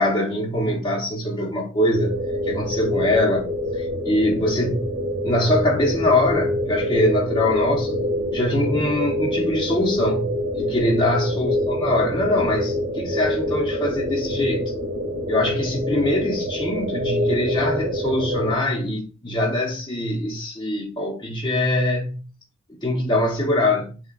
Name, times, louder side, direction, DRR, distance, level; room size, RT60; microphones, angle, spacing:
voice 1, 0.0-2.2 2.4-4.9 5.2-14.7 15.3-22.3 22.7-24.0, left 1 dB, 20° left, 0.8 m, -23 dB
sound 1, 1.9-18.5, left 1 dB, 70° right, 1.8 m, -26 dB
6.8 x 2.3 x 2.4 m
head